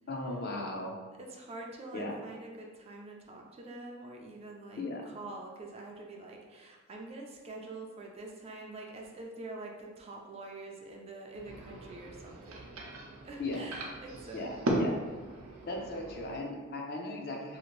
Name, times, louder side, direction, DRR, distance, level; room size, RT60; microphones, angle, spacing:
voice 1, 0.1-1.0 1.9-2.2 4.8-5.0 13.4-13.6 14.3-14.9 15.6-17.6, left 2 dB, 50° left, 1 dB, 0.5 m, -37 dB
voice 2, 1.1-12.9 13.2-15.0 15.6-16.0, right 2 dB, 30° right, 0 dB, 0.3 m, -46 dB
sound 1, 11.3-16.4, right 1 dB, 90° right, 0.5 m, -37 dB
2.8 x 2.5 x 3.0 m, 1.4 s
head